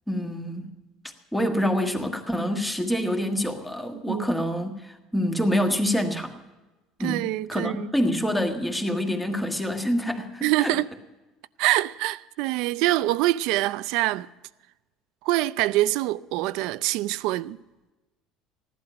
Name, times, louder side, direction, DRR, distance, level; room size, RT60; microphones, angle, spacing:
voice 1, 0.1-0.7 1.3-6.3 7.0-10.7, equal, 5° left, 1.5 m, -26 dB
voice 2, 7.0-7.9 10.4-10.9 11.6-14.3 15.2-17.6, right 16 dB, 70° right, 0.5 m, -25 dB
16.0 x 11.5 x 6.0 m
cardioid pair, 155°, 0 cm